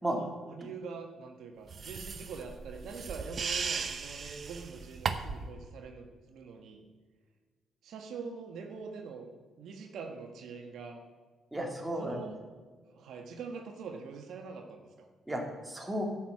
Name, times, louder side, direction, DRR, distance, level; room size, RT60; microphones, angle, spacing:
voice 1, 0.1-6.9 7.8-9.3 9.6-11.0 12.0-12.4 12.8-15.1, right 5 dB, 75° right, 3 dB, 1.4 m, -44 dB
sound 1, 1.7-5.5, right 5 dB, 45° right, 0.8 m, -36 dB
voice 2, 11.5-12.2 15.3-16.0, right 1 dB, 10° right, 0 dB, 2.5 m, -34 dB
11.5 x 6.2 x 7.4 m, 1.4 s
cardioid pair, 90°, 0 cm